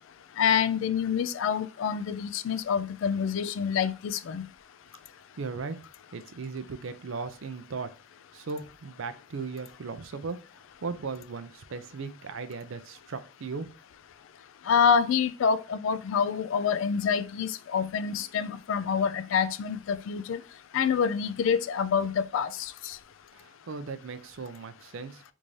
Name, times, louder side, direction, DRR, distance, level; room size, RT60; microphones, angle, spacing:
voice 1, 0.4-4.4 14.7-20.4 20.7-23.0, left 7 dB, 65° left, 0.3 m, -27 dB
voice 2, 5.4-5.9 6.1-7.9 8.3-10.4 10.8-13.7 23.3-25.2, right 4 dB, 65° right, 0.5 m, -37 dB
3.5 x 2.6 x 3.1 m
head